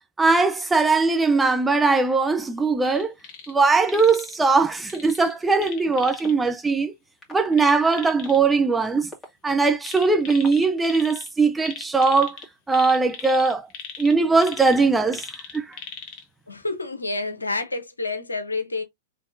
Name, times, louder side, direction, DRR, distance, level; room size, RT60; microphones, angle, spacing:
voice 1, 0.2-3.1 3.5-6.9 7.3-9.1 9.4-12.4 12.7-13.7 14.0-15.2 15.5-15.8, right 4 dB, 10° right, 0.8 m, -20 dB
sound 1, 2.8-3.5 3.8-4.4 4.9-6.3 7.5-8.4 9.8-11.3 11.6-16.2 16.7-16.8, left 6 dB, 40° left, 1.2 m, -39 dB
sound 2, 4.7-4.8 5.6-5.7 6.2-6.5 7.2-7.5 8.2-8.3 9.0-11.0 11.7-12.5, left 1 dB, 10° left, 2.3 m, -41 dB
voice 2, 16.5-18.8, left 3 dB, 85° left, 1.0 m, -29 dB
4.3 x 3.5 x 2.7 m
figure-of-eight pair, 105°, 0 cm